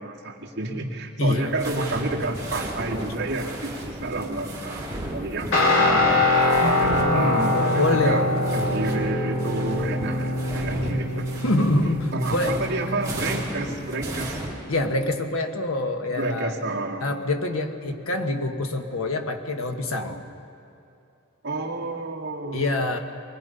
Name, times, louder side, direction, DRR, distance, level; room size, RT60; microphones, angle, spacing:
voice 1, 0.0-6.3 6.6-11.3 12.1-14.4 16.2-17.0 21.4-23.0, right 2 dB, 55° right, -2 dB, 2.1 m, -30 dB
voice 2, 1.2-1.5 6.6-8.2 11.4-12.6 14.7-16.5 17.0-20.2 22.5-23.0, left 2 dB, 80° left, 5 dB, 1.4 m, -25 dB
sound 1, 1.4-9.0 9.3-14.5, right 1 dB, 15° right, 4.0 m, -35 dB
Guitar, 5.5-13.7, left 2 dB, 65° left, 2.6 m, -24 dB
24.0 x 19.5 x 5.5 m, 2.7 s
head